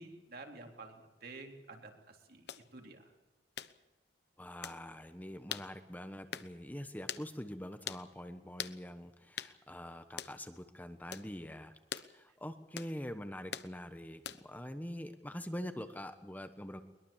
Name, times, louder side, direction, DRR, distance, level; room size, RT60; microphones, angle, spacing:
voice 1, 0.0-2.5 2.7-3.1, right 3 dB, 55° right, 3 dB, 3.8 m, -50 dB
sound 1, 2.5-2.6 3.6-3.7 4.6-4.8 5.5-5.7 6.3-6.5 7.1-7.3 7.9-8.0 8.6-8.8 9.4-9.5 10.2-10.4 11.1-11.3 11.9-12.1 12.8-12.9 13.5-13.7 14.2-14.5, left 9 dB, 60° left, 1.0 m, -42 dB
voice 2, 4.4-11.7 12.0-16.8, equal, 10° left, 8 dB, 1.2 m, -44 dB
22.0 x 22.0 x 7.4 m, 1.1 s
head